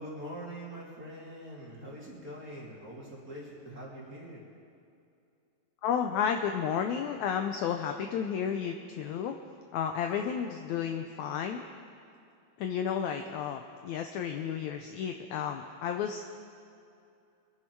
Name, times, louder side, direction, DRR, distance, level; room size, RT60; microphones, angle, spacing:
voice 1, 0.0-4.4, equal, 30° right, -5 dB, 2.5 m, -43 dB
voice 2, 5.8-9.4 9.7-11.6 12.6-16.2, left 8 dB, 80° left, 5 dB, 1.7 m, -32 dB
24.0 x 11.0 x 4.6 m, 2.5 s
omnidirectional pair, 4.0 m